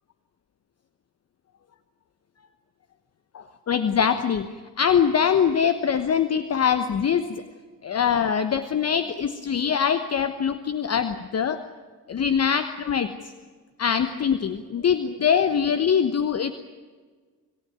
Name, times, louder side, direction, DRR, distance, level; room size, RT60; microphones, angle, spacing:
voice 1, 3.3-7.4 7.8-11.6 12.1-13.2 13.8-16.5, left 7 dB, 30° left, 11 dB, 1.2 m, -23 dB
27.0 x 15.5 x 9.1 m, 1.5 s
figure-of-eight pair, 50°, 49 cm